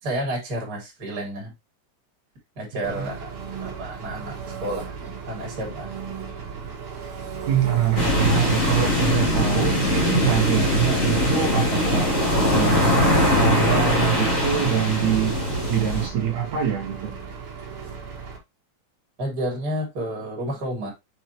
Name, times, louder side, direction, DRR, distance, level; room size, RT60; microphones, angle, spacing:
voice 1, 0.0-1.5 2.6-3.3 3.6-5.0 5.3-5.9 19.2-20.9, right 1 dB, 25° right, 3.0 m, -30 dB
voice 2, 2.7-3.1 7.5-17.1, right 10 dB, 75° right, 1.7 m, -25 dB
Engine, 2.8-18.4, right 6 dB, 55° right, 2.3 m, -35 dB
sound 1, 8.0-16.1, left 1 dB, 20° left, 2.4 m, -21 dB
7.1 x 4.8 x 3.0 m
omnidirectional pair, 5.3 m